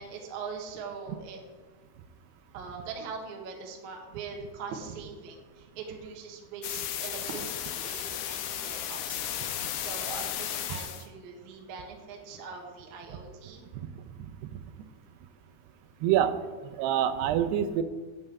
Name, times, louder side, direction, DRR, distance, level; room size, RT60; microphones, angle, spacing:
voice 1, 0.0-1.4 2.5-13.7, right 5 dB, 60° right, 1 dB, 2.2 m, -42 dB
sound 1, 6.6-11.1, left 11 dB, 85° left, 2.8 m, -34 dB
voice 2, 14.2-14.6 16.0-16.3 16.6-17.8, right 10 dB, 90° right, 9 dB, 2.8 m, -26 dB
9.2 x 5.6 x 8.0 m, 1.4 s
omnidirectional pair, 4.6 m